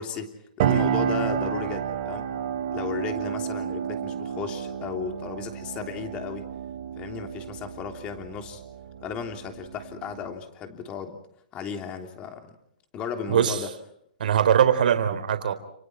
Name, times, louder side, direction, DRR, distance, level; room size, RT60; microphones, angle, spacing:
voice 1, 0.0-2.3 2.7-6.5 7.0-8.6 9.0-11.2 11.5-12.6 12.9-13.7, left 7 dB, 20° left, 5 dB, 3.3 m, -35 dB
sound 1, 0.6-10.3, right 8 dB, 45° right, 3.4 m, -30 dB
voice 2, 13.3-13.6 14.2-15.5, right 9 dB, 65° right, 9 dB, 3.9 m, -21 dB
29.5 x 29.5 x 4.5 m, 0.71 s
hypercardioid pair, 160°, 5 cm